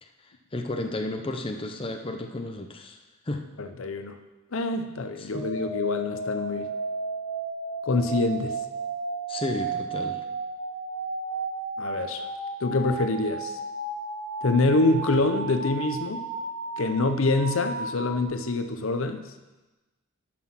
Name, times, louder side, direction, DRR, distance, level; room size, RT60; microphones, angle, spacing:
voice 1, 0.5-3.0 3.3-3.4 5.2-5.5 9.3-10.2, left 2 dB, 25° left, 4 dB, 0.7 m, -32 dB
voice 2, 3.6-4.2 4.5-6.7 7.9-8.6 11.8-12.2 12.6-13.6 14.4-16.2 16.8-19.2, left 2 dB, 65° left, 7 dB, 0.7 m, -25 dB
sound 1, 5.3-18.2, right 3 dB, 85° right, 1.2 m, -33 dB
11.0 x 6.1 x 6.0 m, 1.1 s
head